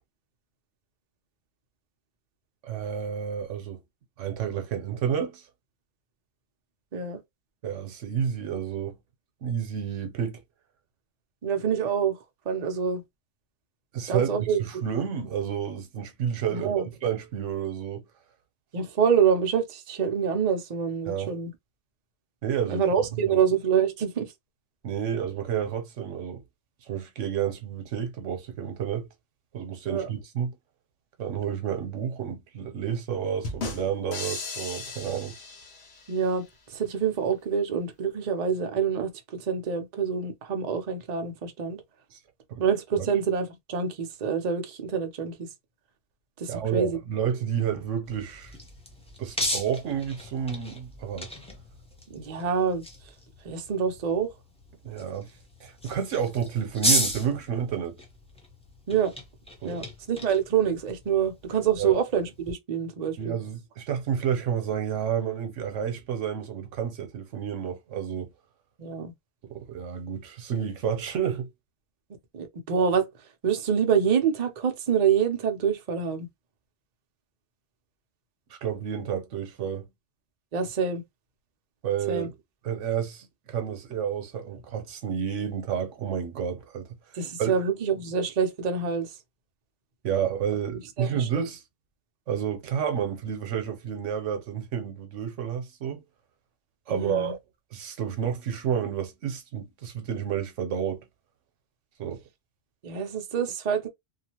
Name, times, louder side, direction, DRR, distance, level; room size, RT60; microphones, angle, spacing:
voice 1, 2.6-3.8 4.2-5.4 7.6-9.0 9.4-10.4 13.9-18.0 21.1-21.3 22.4-22.8 23.2-23.4 24.8-26.4 26.9-29.1 29.5-30.5 31.2-35.3 42.5-42.6 43.0-43.1 46.5-48.5 49.2-51.3 54.8-55.3 55.6-58.0 59.6-59.8 61.8-62.0 63.2-68.3 69.5-71.5 78.5-79.9 81.8-82.3 82.6-86.9 87.4-87.5 90.0-91.6 92.3-96.0 96.9-97.4 97.7-101.0 102.0-102.2, right 8 dB, 90° right, 1.1 m, -30 dB
voice 2, 11.4-12.2 12.5-13.0 14.1-14.6 16.5-16.9 18.7-21.5 22.7-24.3 29.8-30.1 36.1-36.4 36.7-41.8 42.6-45.5 46.4-47.0 52.1-52.8 53.4-54.3 58.9-59.1 59.6-63.4 68.8-69.1 72.3-73.1 73.4-76.3 80.5-81.0 82.1-82.3 87.1-89.1 90.7-91.5 96.9-97.3 102.8-103.9, right 7 dB, 45° right, 0.6 m, -26 dB
sound 1, 33.4-36.3, left 3 dB, 65° left, 1.0 m, -36 dB
sound 2, 48.1-62.5, equal, 5° left, 0.7 m, -35 dB
2.8 x 2.4 x 2.8 m
omnidirectional pair, 1.2 m